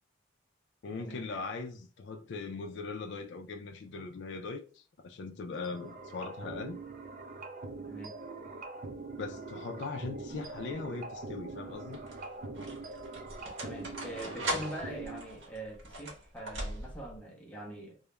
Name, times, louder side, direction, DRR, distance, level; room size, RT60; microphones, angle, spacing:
voice 1, 0.8-6.8 9.2-12.0, left 4 dB, 65° left, 0.4 m, -40 dB
sound 1, 5.5-15.2, right 3 dB, 45° right, 0.4 m, -43 dB
voice 2, 7.8-8.2 13.4-18.0, right 1 dB, 5° left, 0.6 m, -43 dB
sound 2, 10.4-10.8 11.7-17.2, right 1 dB, 75° right, 0.9 m, -40 dB
2.3 x 2.0 x 2.9 m
head